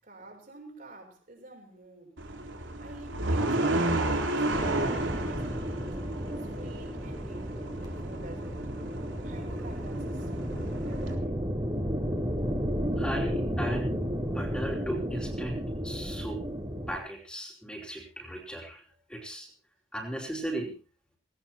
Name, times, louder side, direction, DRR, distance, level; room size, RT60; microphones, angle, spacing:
voice 1, 0.0-2.2 2.8-6.0 6.4-8.6 9.2-10.3 10.9-11.3, right 2 dB, 45° right, 6.8 m, -50 dB
sound 1, 2.2-11.1, right 2 dB, 90° right, 3.8 m, -32 dB
sound 2, 4.5-17.0, equal, 20° right, 4.1 m, -33 dB
voice 2, 13.0-16.4 16.9-18.8 19.1-19.5 19.9-20.7, right 1 dB, 5° left, 4.9 m, -37 dB
19.5 x 18.5 x 3.0 m
head